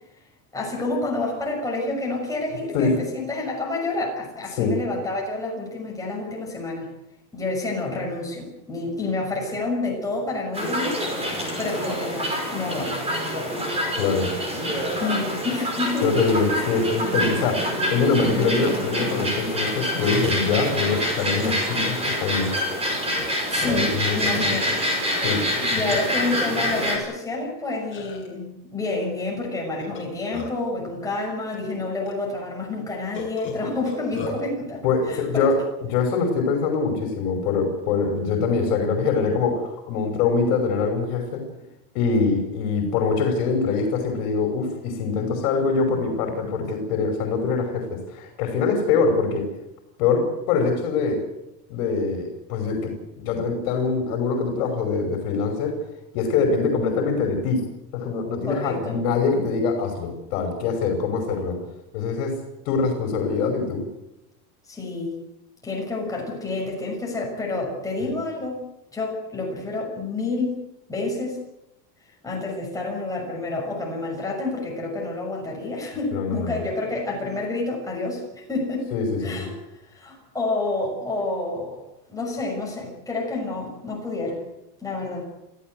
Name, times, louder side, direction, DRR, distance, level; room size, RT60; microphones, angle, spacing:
voice 1, 0.5-6.9 7.3-13.1 15.0-16.1 23.5-24.9 25.6-35.5 58.4-59.0 64.7-65.2 65.6-68.6 68.9-70.6 70.9-71.4 72.2-78.9 79.2-79.5 79.8-81.8 82.1-84.4 84.8-85.2, left 2 dB, 5° left, -2 dB, 6.4 m, -29 dB
sound 1, 10.5-27.0, equal, 10° right, 5.4 m, -26 dB
voice 2, 14.0-14.3 16.0-22.5 23.7-24.6 25.1-25.4 25.7-25.8 34.8-41.4 41.9-49.4 50.0-51.2 51.7-52.9 53.2-55.8 56.1-57.6 57.9-61.6 61.9-62.4 62.7-63.8 68.0-68.1 76.1-76.6 78.9-79.5, left 4 dB, 55° left, 3 dB, 5.8 m, -24 dB
Burping eructation, 20.1-20.2 20.5-20.7 21.4-21.5 21.8-22.5 23.2-23.3 23.5-24.0 24.6-25.6 26.2-26.3 26.6-27.2 27.9-28.3 29.8-30.7 31.5-31.6 32.1-32.2 33.1-34.4, left 2 dB, 25° left, 7.9 m, -37 dB
28.0 x 15.5 x 8.0 m, 0.88 s
supercardioid pair, 170°, 49 cm